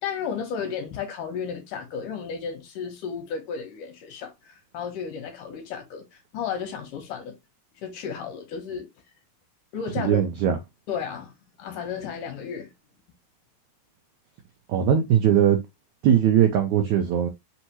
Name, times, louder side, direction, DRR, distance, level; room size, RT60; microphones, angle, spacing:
voice 1, 0.0-7.4 7.8-8.9 9.7-10.2 10.9-12.7, left 7 dB, 70° left, 2.3 m, -33 dB
voice 2, 10.0-10.6 14.7-15.6 16.0-17.3, right 9 dB, 85° right, 1.6 m, -20 dB
5.6 x 2.8 x 2.9 m
omnidirectional pair, 4.2 m